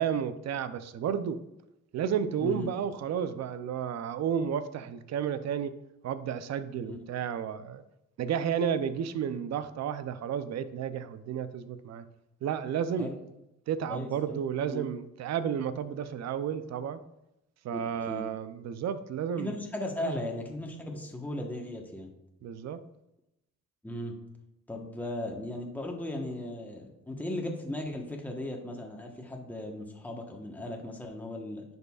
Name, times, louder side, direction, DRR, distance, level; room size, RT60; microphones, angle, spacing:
voice 1, 0.0-1.4 1.9-5.8 6.0-7.8 8.2-12.1 12.4-13.1 13.7-17.0 17.6-19.6 20.0-20.2 22.4-22.8, right 8 dB, 60° right, 12 dB, 0.6 m, -32 dB
voice 2, 13.9-14.4 14.7-14.8 17.7-18.2 19.4-22.1 23.8-24.2 24.7-31.6, left 1 dB, 5° left, 1 dB, 1.2 m, -37 dB
10.5 x 5.4 x 2.4 m, 0.88 s
cardioid pair, 90°, 30 cm